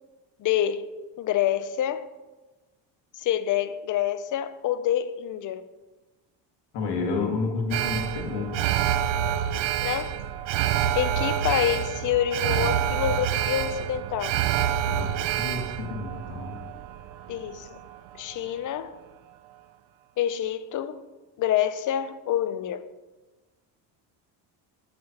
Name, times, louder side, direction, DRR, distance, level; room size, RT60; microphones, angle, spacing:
voice 1, 0.4-2.0 3.2-5.6 9.8-10.3 10.9-14.4 17.3-17.8 18.2-19.0 20.2-21.0 21.4-22.8, left 11 dB, 45° left, 0.6 m, -27 dB
voice 2, 6.7-8.6 14.8-16.6, left 4 dB, 70° left, 2.1 m, -30 dB
Alarm, 7.7-18.0 18.3-18.4, right 10 dB, 90° right, 0.6 m, -27 dB
9.5 x 7.8 x 2.9 m
cardioid pair, 120°, 43 cm